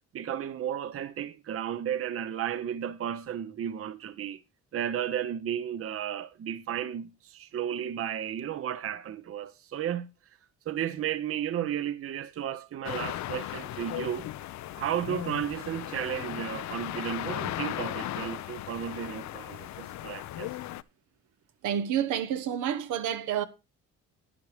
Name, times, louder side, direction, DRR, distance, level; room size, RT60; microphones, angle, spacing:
voice 1, 0.1-4.4 4.7-10.1 10.7-14.3 14.8-20.5, right 10 dB, 50° right, 0.7 m, -33 dB
sound 1, 12.8-20.8, left 14 dB, 65° left, 0.5 m, -37 dB
voice 2, 21.6-23.4, right 9 dB, 85° right, 1.0 m, -29 dB
11.0 x 9.6 x 3.3 m
cardioid pair, 90°, 30 cm